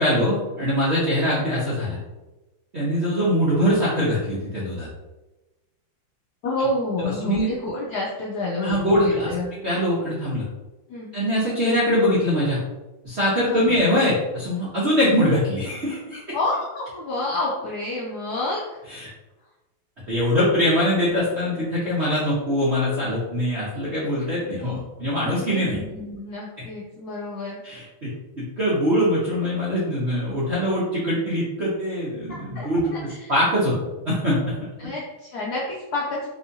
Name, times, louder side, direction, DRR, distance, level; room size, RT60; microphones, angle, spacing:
voice 1, 0.0-2.0 2.7-4.9 7.0-7.5 8.6-10.4 11.1-12.6 13.0-16.2 18.9-19.1 20.1-25.8 26.6-26.7 27.6-33.8 34.1-34.6, equal, 60° right, -8 dB, 0.6 m, -23 dB
voice 2, 6.4-8.8 9.0-9.5 10.9-11.1 13.5-13.8 16.3-18.7 24.6-24.8 25.3-27.6 32.3-33.3 34.8-36.3, left 2 dB, 75° left, -5 dB, 0.9 m, -29 dB
3.5 x 2.7 x 2.6 m, 1.1 s
omnidirectional pair, 2.3 m